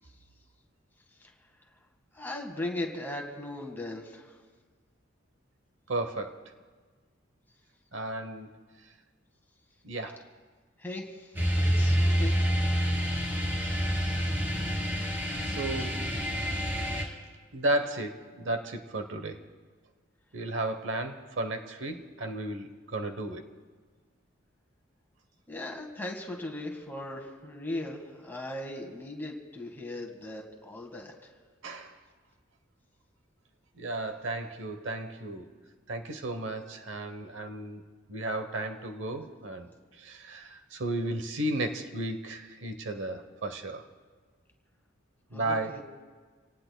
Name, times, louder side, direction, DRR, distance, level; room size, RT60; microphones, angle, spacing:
voice 1, 2.1-4.4 10.8-12.4 25.5-31.1 45.3-45.8, left 1 dB, 10° left, 0 dB, 1.8 m, -38 dB
voice 2, 5.9-6.5 7.9-8.5 9.8-10.2 15.4-16.1 17.5-19.4 20.3-23.4 31.6-32.0 33.7-35.5 35.9-37.8 38.1-43.9 45.3-45.8, right 2 dB, 65° right, 7 dB, 1.0 m, -34 dB
sound 1, 11.3-17.0, equal, 10° right, 2.6 m, -27 dB
27.5 x 18.0 x 2.3 m, 1.5 s
head